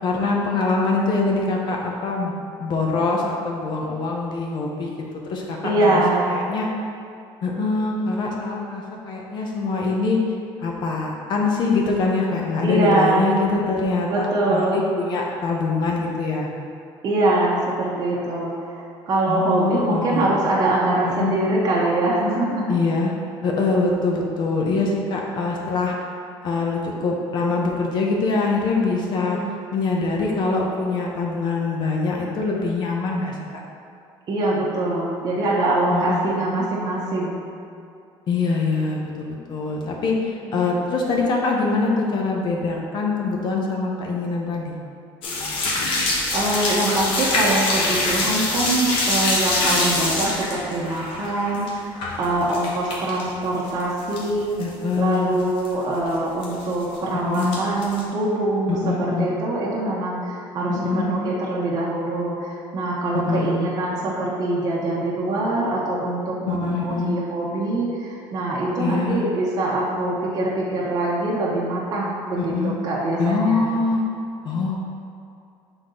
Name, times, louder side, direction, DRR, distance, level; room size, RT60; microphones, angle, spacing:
voice 1, 0.0-4.9 5.3-6.7 7.4-10.2 10.6-16.5 19.3-20.3 21.0-21.3 22.7-23.1 23.4-25.9 26.4-29.4 29.7-33.4 35.9-36.4 38.3-44.8 54.6-55.4 57.2-57.6 58.7-59.3 60.7-61.1 63.1-63.6 66.5-67.2 68.8-69.3 72.4-72.8 73.2-74.0 74.4-74.8, left 3 dB, 55° left, -1 dB, 1.0 m, -24 dB
voice 2, 5.6-6.3 12.6-13.3 14.1-14.8 17.0-22.7 29.2-29.5 34.3-37.4 40.4-40.6 45.7-46.0 46.3-54.6 55.0-73.7, right 2 dB, 45° right, -6 dB, 1.0 m, -23 dB
sound 1, 45.2-53.2 53.5-54.3 54.6-54.7 55.1-55.2 55.4-55.7 56.4-57.0 57.3-58.0, left 2 dB, 70° left, 1.3 m, -24 dB
6.1 x 4.0 x 3.9 m, 2.5 s
cardioid pair, 130°, 9 cm